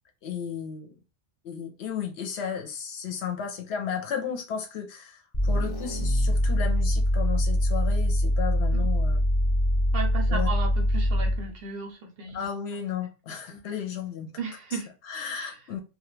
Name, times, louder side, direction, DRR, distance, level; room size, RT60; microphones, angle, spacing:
voice 1, 0.2-1.0 1.4-9.2 10.3-10.5 12.3-14.3 14.7-14.8 15.0-15.8, left 7 dB, 70° left, 0.8 m, -34 dB
sound 1, 5.3-11.5, equal, 25° left, 0.5 m, -24 dB
voice 2, 9.9-12.5 13.5-13.6 14.4-14.9 15.3-15.6, right 4 dB, 65° right, 0.7 m, -35 dB
2.3 x 2.1 x 3.0 m
omnidirectional pair, 1.2 m